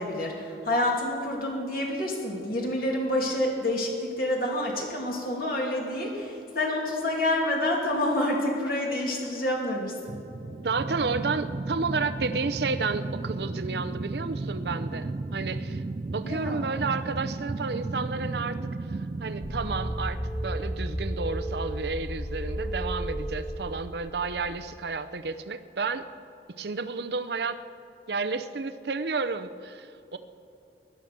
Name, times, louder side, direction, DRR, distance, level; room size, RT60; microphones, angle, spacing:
voice 1, 0.0-10.2 16.2-16.6, left 1 dB, 55° left, -1 dB, 2.6 m, -28 dB
sound 1, 10.1-21.0, right 3 dB, 30° right, 0.3 m, -34 dB
voice 2, 10.6-15.8 16.1-18.6 19.2-26.1 26.6-27.6 28.1-30.2, right 4 dB, 65° right, 10 dB, 0.6 m, -31 dB
sound 2, 19.4-24.4, right 1 dB, 15° left, 2.0 m, -33 dB
17.5 x 11.5 x 6.0 m, 2.9 s
head